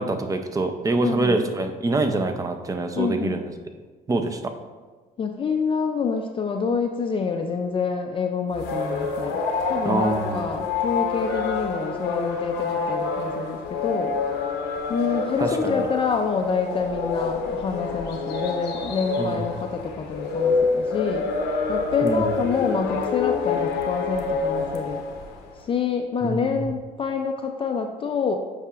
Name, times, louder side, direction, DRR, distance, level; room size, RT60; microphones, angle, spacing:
voice 1, 0.0-3.5 4.1-4.5 9.8-10.5 15.4-15.9 19.2-19.4 22.0-22.4 26.2-26.7, right 2 dB, 20° right, 6 dB, 0.5 m, -25 dB
voice 2, 1.0-1.4 3.0-3.4 5.2-9.4 9.7-14.1 14.9-21.3 21.7-25.0 25.6-28.4, left 5 dB, 30° left, 4 dB, 0.4 m, -27 dB
sound 1, 8.5-25.5, left 4 dB, 90° left, 0.8 m, -27 dB
8.3 x 4.8 x 2.4 m, 1.4 s
cardioid pair, 110°, 17 cm